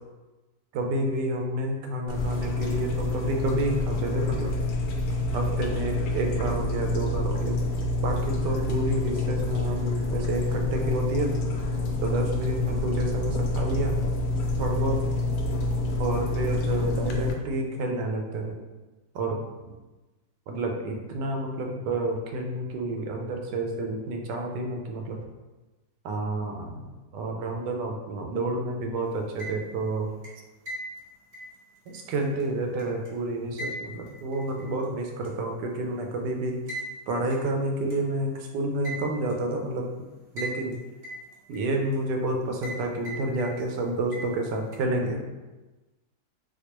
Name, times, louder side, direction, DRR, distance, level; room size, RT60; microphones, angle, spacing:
voice 1, 0.7-4.5 5.3-7.6 8.0-11.4 12.0-14.0 14.6-15.0 16.0-18.6 19.1-19.4 19.7-19.8 20.5-25.2 26.0-30.1 31.9-36.8 37.1-39.9 40.3-40.8 41.5-45.2, right 2 dB, 85° right, 2 dB, 1.2 m, -29 dB
sound 1, 2.1-17.3, left 2 dB, 75° left, 1.0 m, -27 dB
sound 2, 29.2-29.8 30.2-33.1 33.6-34.8 35.2-35.3 36.7-36.9 37.3-37.4 37.9-38.0 38.8-39.4 40.4-40.7 41.0-42.0 42.6-42.8 43.0-43.8 44.1-44.8, equal, 45° right, 0.8 m, -38 dB
4.3 x 2.3 x 2.9 m, 1.2 s
omnidirectional pair, 1.8 m